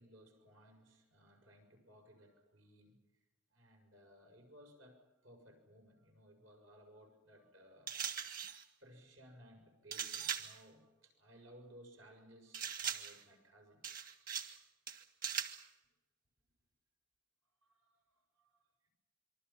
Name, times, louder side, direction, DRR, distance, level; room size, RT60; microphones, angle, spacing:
voice 1, 0.0-3.0 3.5-8.0 8.3-8.5 8.8-14.1 14.4-14.5 17.7-18.9, equal, 85° right, 3 dB, 6.9 m, -61 dB
Kitchen Items, 7.9-8.6 9.9-10.6 12.5-13.2 13.8-14.6 14.9-15.6, right 7 dB, 45° right, 1.7 m, -40 dB
26.5 x 24.5 x 5.8 m, 1.1 s
head